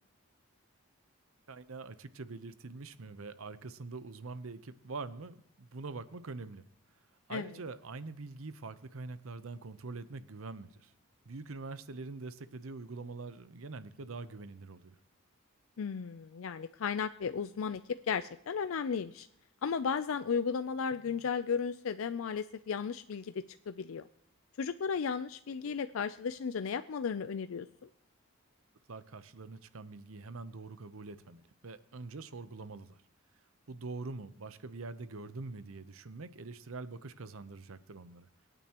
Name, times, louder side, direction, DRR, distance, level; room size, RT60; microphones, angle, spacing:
voice 1, 1.5-6.6 7.3-10.9 11.2-15.0 28.9-33.0 33.7-38.3, right 3 dB, 80° right, 13 dB, 0.8 m, -44 dB
voice 2, 15.8-17.8 18.1-19.3 19.6-23.3 23.7-24.0 24.6-27.7, left 6 dB, 75° left, 11 dB, 0.4 m, -34 dB
25.0 x 9.1 x 3.0 m, 0.72 s
head